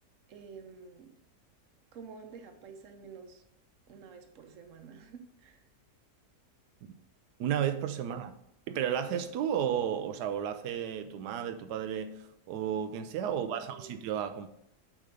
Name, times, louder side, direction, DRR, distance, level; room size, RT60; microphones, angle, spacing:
voice 1, 0.3-1.1 1.9-3.4 3.9-5.6 8.0-8.1 13.3-14.0, right 6 dB, 55° right, 1.2 m, -49 dB
voice 2, 7.4-8.3 8.7-14.5, right 9 dB, 90° right, 1.2 m, -33 dB
7.5 x 5.0 x 5.2 m
omnidirectional pair, 1.7 m